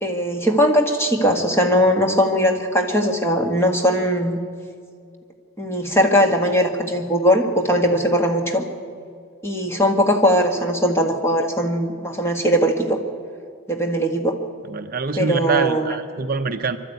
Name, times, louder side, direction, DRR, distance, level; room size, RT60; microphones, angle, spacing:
voice 1, 0.0-4.4 5.6-8.6 9.4-13.0 13.7-14.4 15.2-16.0, equal, 10° left, 2 dB, 1.9 m, -19 dB
voice 2, 14.7-16.8, right 4 dB, 40° right, 7 dB, 0.7 m, -24 dB
24.5 x 12.5 x 9.3 m, 2.2 s
head